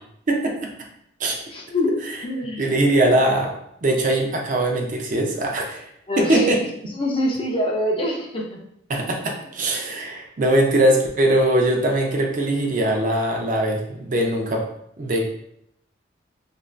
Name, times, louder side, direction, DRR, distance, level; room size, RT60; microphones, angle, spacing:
voice 1, 0.3-0.7 1.2-1.4 2.0-2.2 2.6-3.5 3.8-5.8 6.2-6.6 8.9-14.7 15.0-15.3, right 1 dB, 45° right, 1 dB, 0.4 m, -21 dB
voice 2, 1.5-2.6 6.1-6.5 7.0-8.6, left 1 dB, 30° left, -1 dB, 0.4 m, -24 dB
2.5 x 2.3 x 3.1 m, 0.76 s
head